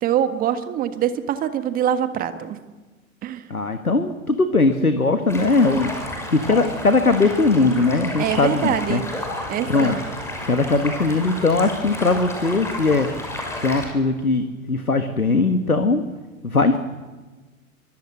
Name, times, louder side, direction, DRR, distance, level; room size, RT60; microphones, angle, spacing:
voice 1, 0.0-2.6 3.2-3.4 8.2-9.1 9.5-10.0, right 9 dB, 20° right, 10 dB, 1.6 m, -24 dB
voice 2, 3.5-5.9 6.3-9.0 9.7-10.0 10.5-13.1 13.6-16.0 16.4-16.8, left 3 dB, 85° left, 9 dB, 1.7 m, -20 dB
Stream, 5.3-13.8, left 1 dB, 5° left, 6.0 m, -31 dB
24.0 x 23.0 x 7.9 m, 1.3 s
figure-of-eight pair, 105°, 42 cm